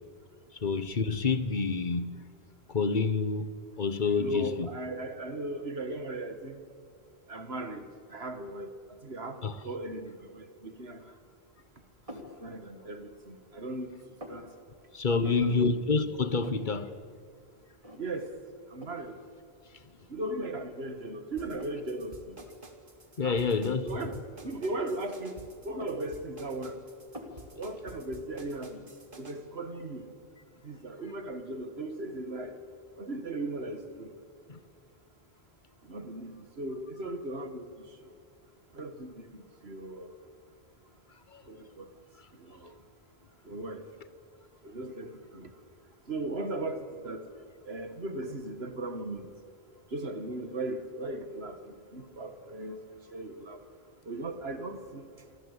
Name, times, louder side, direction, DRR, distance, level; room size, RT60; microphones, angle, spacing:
voice 1, 0.6-2.1 2.7-4.7 9.4-9.6 14.9-16.9 23.2-24.0 34.5-34.6 41.3-41.4, left 4 dB, 50° left, 1.4 m, -28 dB
voice 2, 4.2-6.6 7.3-11.0 12.1-14.0 14.3-14.5 15.1-15.7 18.0-18.3 18.7-19.1 20.1-22.4 23.2-23.4 23.8-26.8 27.6-28.8 29.2-30.1 30.6-32.6 33.0-34.1 35.9-37.7 38.7-40.1 41.5-41.9 42.4-42.7 43.5-43.8 44.6-45.5 46.1-47.3 47.7-49.3 49.9-52.8 53.1-53.6 54.1-55.1, right 2 dB, 75° right, 2.2 m, -37 dB
sound 1, 12.1-12.4 12.9-13.6 13.9-14.4 15.2-15.6 15.9-16.0 16.2-16.8 17.2-17.3 17.8-18.3 18.8-19.1 19.9-20.0 20.5-21.9 22.3-22.5 23.3-23.6 24.6-25.3 25.6-26.7 27.1-27.5, left 1 dB, 30° right, 3.3 m, -47 dB
sound 2, 21.4-29.4, right 2 dB, 55° right, 2.6 m, -50 dB
28.0 x 24.0 x 8.4 m
omnidirectional pair, 1.1 m